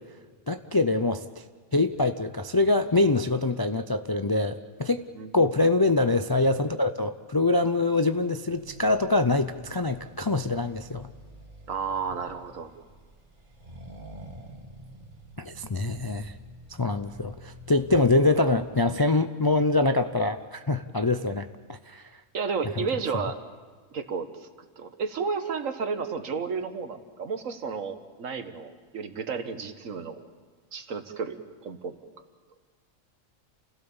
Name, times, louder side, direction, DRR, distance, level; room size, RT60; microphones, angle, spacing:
voice 1, 0.5-1.4 1.7-5.1 5.3-11.1 15.4-16.3 16.8-22.0, left 2 dB, 40° left, 9 dB, 0.3 m, -24 dB
Accelerating revving vroom, 8.5-18.9, right 1 dB, 35° right, 2.5 m, -48 dB
voice 2, 11.7-12.7 22.3-23.4 23.9-24.5 24.8-30.3 30.7-32.0, right 5 dB, 80° right, 8 dB, 1.7 m, -32 dB
29.0 x 16.5 x 7.1 m, 1.5 s
omnidirectional pair, 1.3 m